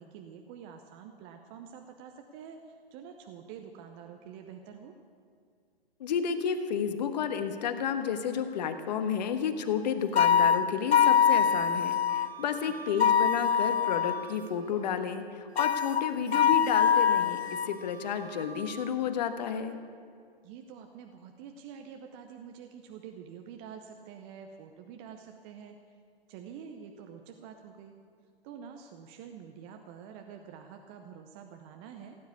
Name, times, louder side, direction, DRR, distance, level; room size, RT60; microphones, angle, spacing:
voice 1, 0.0-4.9 12.9-13.1 20.4-25.8 26.3-27.9 28.4-32.2, right 7 dB, 20° right, 4 dB, 0.7 m, -47 dB
voice 2, 6.0-17.4 17.6-19.8, left 7 dB, 45° left, 8 dB, 1.3 m, -31 dB
sound 1, 10.2-12.3 13.0-14.3 15.6-17.7, left 8 dB, 90° left, 0.5 m, -24 dB
Wind instrument woodwind instrument, 12.1-15.1 15.5-16.2 16.7-18.9, right 5 dB, 70° right, 1.0 m, -46 dB
16.5 x 9.4 x 8.3 m, 2.2 s
figure-of-eight pair, 135°, 31 cm